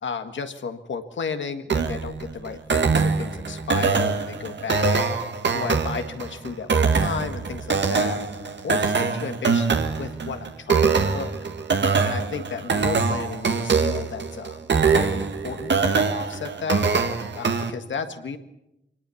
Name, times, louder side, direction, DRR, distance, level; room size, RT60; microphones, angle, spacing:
voice 1, 0.0-5.0 5.5-8.2 8.6-11.3 12.0-16.8 17.3-18.4, left 5 dB, 85° left, 8 dB, 1.7 m, -33 dB
sound 1, 1.7-17.7, right 5 dB, 70° right, 1.8 m, -23 dB
24.5 x 19.0 x 7.1 m, 0.88 s
cardioid pair, 50°, 19 cm